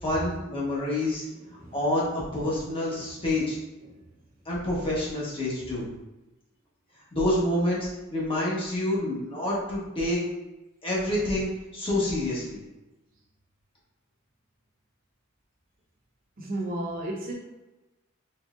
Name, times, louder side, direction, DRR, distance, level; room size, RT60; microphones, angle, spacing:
voice 1, 0.0-1.2 1.7-3.6 4.4-5.9 7.1-10.2 10.8-12.6, left 1 dB, 25° left, -6 dB, 1.2 m, -27 dB
voice 2, 1.3-1.8 2.4-2.5 2.9-3.1 3.8-4.1 16.4-17.3, right 1 dB, 40° right, -2 dB, 0.9 m, -35 dB
4.0 x 3.4 x 2.5 m, 1.0 s
head